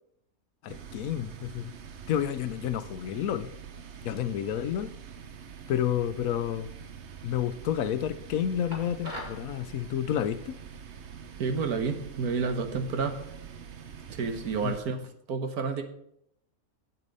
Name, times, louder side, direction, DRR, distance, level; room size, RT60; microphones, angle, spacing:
voice 1, 0.6-1.7 2.1-3.5 4.0-4.9 5.7-6.7 7.2-10.5 14.6-14.7, left 10 dB, 70° left, 1.0 m, -30 dB
sound 1, 0.7-14.8, right 7 dB, 55° right, 1.0 m, -45 dB
sound 2, 8.7-9.4, left 1 dB, 30° right, 2.2 m, -39 dB
voice 2, 11.4-13.2 14.1-15.8, right 5 dB, 80° right, 1.6 m, -30 dB
8.3 x 8.2 x 5.4 m
omnidirectional pair, 1.6 m